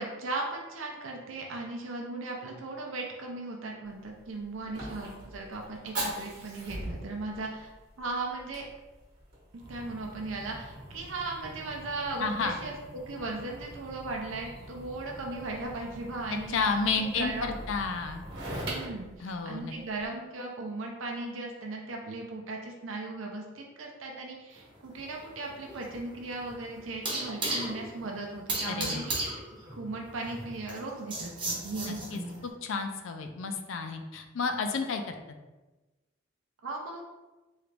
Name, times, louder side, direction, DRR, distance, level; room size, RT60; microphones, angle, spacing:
voice 1, 0.0-7.7 8.0-8.6 9.7-12.8 13.1-17.6 18.6-29.4 29.8-32.4 36.6-37.0, right 2 dB, 80° right, 0 dB, 0.5 m, -37 dB
Fire, 3.8-20.1, right 1 dB, 50° right, 1.0 m, -42 dB
voice 2, 12.2-12.6 16.5-18.2 19.2-19.7 28.7-29.0 31.9-32.2 32.6-35.1, left 4 dB, 75° left, 6 dB, 0.4 m, -31 dB
sound 1, 24.6-32.4, right 2 dB, 25° right, 0.7 m, -36 dB
3.2 x 2.5 x 3.2 m, 1.1 s
head